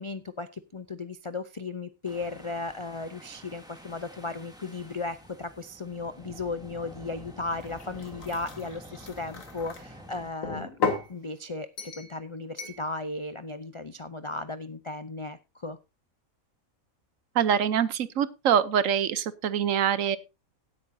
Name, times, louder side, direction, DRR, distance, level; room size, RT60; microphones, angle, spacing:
voice 1, 0.0-10.7 11.1-15.8, left 3 dB, 45° left, 11 dB, 0.4 m, -36 dB
sound 1, 2.0-10.3, equal, 5° right, 2.5 m, -49 dB
sound 2, 7.5-9.8 10.4-11.1 11.8-12.1 12.6-12.8, left 4 dB, 70° left, 2.1 m, -34 dB
voice 2, 17.3-20.2, right 8 dB, 70° right, 16 dB, 1.1 m, -24 dB
17.0 x 8.7 x 2.7 m, 0.25 s
omnidirectional pair, 1.5 m